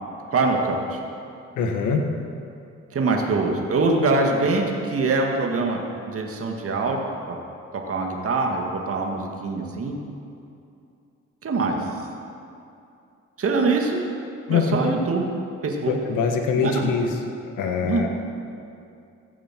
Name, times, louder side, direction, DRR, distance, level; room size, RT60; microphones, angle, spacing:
voice 1, 0.3-1.0 2.9-5.8 6.1-7.4 7.9-10.0 11.4-11.8 13.4-14.0 14.5-15.3 15.6-16.0 16.6-16.9 17.8-18.1, right 3 dB, 50° right, 1 dB, 2.1 m, -23 dB
voice 2, 1.6-2.0 14.5-14.8 15.9-17.1 17.6-18.1, left 5 dB, 85° left, 3 dB, 1.7 m, -23 dB
15.0 x 8.7 x 7.6 m, 2.6 s
cardioid pair, 90°, 30 cm